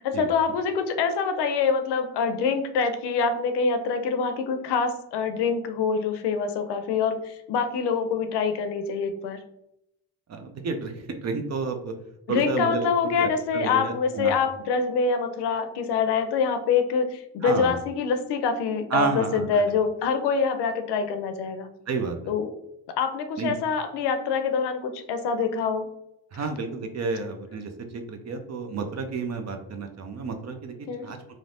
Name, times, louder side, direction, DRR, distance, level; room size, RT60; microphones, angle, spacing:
voice 1, 0.0-9.4 12.3-21.7 22.3-22.5 23.0-25.9 30.9-31.1, left 5 dB, 80° left, 7 dB, 0.6 m, -25 dB
voice 2, 10.3-11.9 12.3-12.9 13.2-14.4 17.4-17.8 18.9-19.6 21.9-22.2 23.4-23.6 26.3-30.7 31.0-31.2, right 4 dB, 40° right, 6 dB, 0.5 m, -30 dB
3.1 x 2.0 x 2.6 m, 0.79 s
cardioid pair, 85°, 40 cm